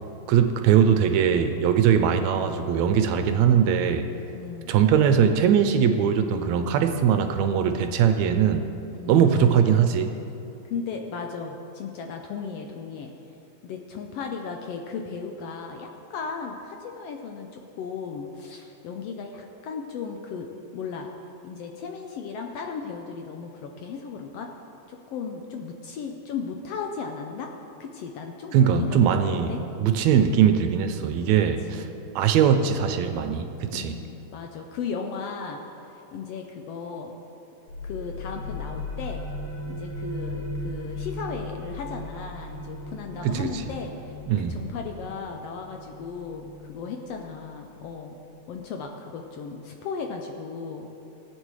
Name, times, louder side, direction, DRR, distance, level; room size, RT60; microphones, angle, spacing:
voice 1, 0.3-4.1 4.7-8.6 9.1-10.1 28.5-31.8 32.2-33.9 43.2-43.5 44.3-44.6, right 8 dB, 80° right, 7 dB, 1.8 m, -21 dB
voice 2, 4.3-4.7 8.9-9.8 10.7-13.1 13.6-21.1 21.4-24.5 24.9-27.5 27.8-29.6 31.7-31.9 33.7-37.1 37.8-39.2 39.7-48.2 48.5-50.9, left 5 dB, 75° left, 3 dB, 1.5 m, -36 dB
sound 1, 37.7-49.1, left 1 dB, 55° left, 2.9 m, -37 dB
17.5 x 8.9 x 3.2 m, 2.8 s
omnidirectional pair, 3.3 m